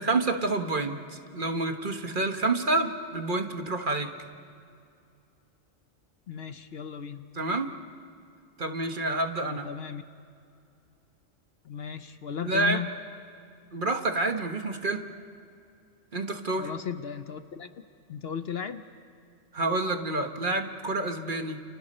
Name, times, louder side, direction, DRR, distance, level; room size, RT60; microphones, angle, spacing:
voice 1, 0.0-4.1 7.4-7.7 8.6-9.7 12.4-12.8 13.7-15.0 16.1-16.7 19.5-21.6, right 2 dB, 45° right, 6 dB, 1.3 m, -28 dB
voice 2, 6.3-7.2 9.6-10.0 11.6-12.9 16.6-17.7 18.1-18.8, left 8 dB, 55° left, 10 dB, 0.9 m, -35 dB
29.5 x 29.5 x 4.3 m, 2.4 s
omnidirectional pair, 1.3 m